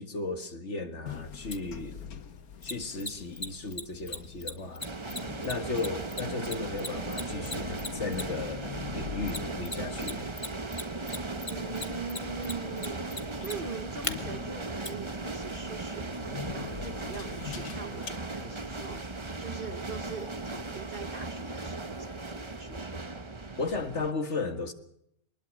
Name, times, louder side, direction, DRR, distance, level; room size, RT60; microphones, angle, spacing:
voice 1, 0.0-2.0 2.6-4.8 5.4-10.3 23.6-24.7, left 3 dB, 50° left, 2.1 m, -35 dB
sound 1, 1.1-18.1, left 8 dB, 80° left, 1.8 m, -45 dB
Mechanisms, 1.5-1.6 2.6-8.5 9.3-10.1 10.4-14.1 14.8-14.9, left 3 dB, 20° left, 1.5 m, -36 dB
sound 2, 4.8-24.1, right 3 dB, 20° right, 1.2 m, -37 dB
voice 2, 11.5-16.2 16.5-22.9, right 5 dB, 40° right, 1.2 m, -42 dB
23.5 x 20.5 x 6.4 m
omnidirectional pair, 1.5 m